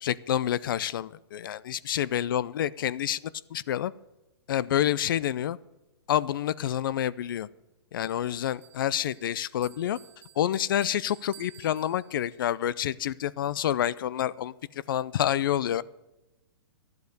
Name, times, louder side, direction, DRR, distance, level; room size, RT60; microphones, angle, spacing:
voice 1, 0.0-3.2 3.5-3.9 4.5-5.6 6.1-7.5 7.9-10.0 10.4-14.5 14.9-15.8, left 11 dB, 55° left, 21 dB, 0.4 m, -28 dB
Bell, 8.0-12.5, right 13 dB, 15° right, 0.5 m, -54 dB
12.0 x 8.0 x 6.6 m, 1.0 s
hypercardioid pair, 160°, 14 cm